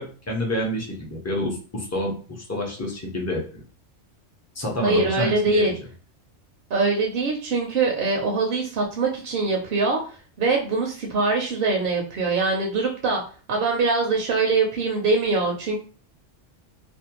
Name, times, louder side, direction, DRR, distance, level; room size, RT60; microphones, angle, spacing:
voice 1, 0.0-3.4 4.6-5.8, left 1 dB, 25° left, -1 dB, 0.3 m, -28 dB
voice 2, 4.8-5.7 6.7-10.0 10.4-13.2 13.5-15.8, right 3 dB, 60° right, 1 dB, 0.6 m, -23 dB
2.5 x 2.2 x 2.8 m, 0.38 s
omnidirectional pair, 1.3 m